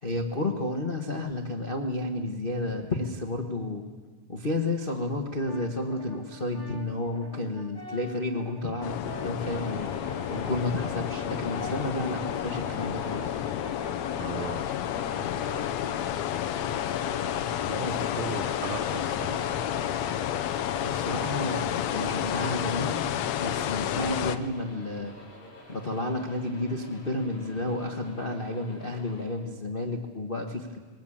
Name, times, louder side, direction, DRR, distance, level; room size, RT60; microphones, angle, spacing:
voice 1, 0.0-3.8 4.3-9.9 10.3-13.4 17.8-18.0 20.7-23.1 23.4-25.2 25.7-30.8, left 2 dB, 90° left, 2 dB, 0.4 m, -31 dB
Brass instrument, 5.4-20.2, left 1 dB, 10° right, 1.3 m, -46 dB
sound 1, 8.8-24.4, left 11 dB, 70° left, 1.8 m, -30 dB
sound 2, 9.3-29.3, left 1 dB, 50° left, 5.6 m, -46 dB
voice 2, 14.1-14.7 17.6-19.6, right 9 dB, 70° right, 9 dB, 1.7 m, -38 dB
22.0 x 18.0 x 8.7 m, 1.5 s
omnidirectional pair, 3.6 m